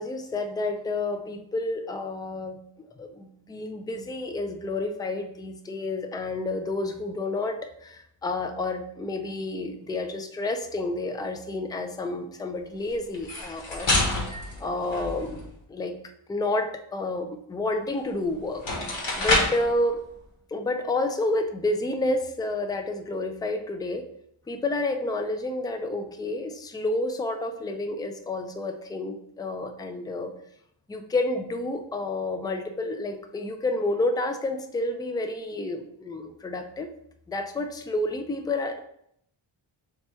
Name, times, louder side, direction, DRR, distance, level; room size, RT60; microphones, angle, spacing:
voice 1, 0.0-2.6 3.0-14.0 14.6-15.9 16.3-18.6 19.2-20.0 20.5-24.0 24.5-30.3 30.9-36.9 37.3-38.8, left 2 dB, 10° left, 7 dB, 0.3 m, -30 dB
sound 1, 13.1-15.5 18.0-18.1 18.5-19.7, left 2 dB, 65° left, 1.3 m, -27 dB
3.4 x 2.9 x 4.2 m, 0.73 s
cardioid pair, 55°, 50 cm